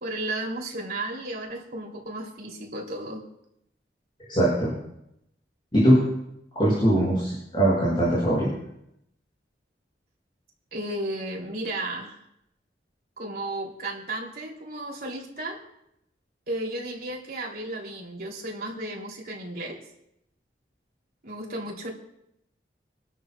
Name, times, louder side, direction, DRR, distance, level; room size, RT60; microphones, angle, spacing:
voice 1, 0.0-3.2 10.7-12.2 13.2-15.6 16.5-19.8 21.2-21.9, right 1 dB, 60° right, -1 dB, 3.1 m, -34 dB
voice 2, 4.3-4.7 5.7-6.0 6.5-8.5, right 1 dB, 30° left, -7 dB, 6.6 m, -21 dB
26.5 x 12.5 x 2.4 m, 0.80 s
head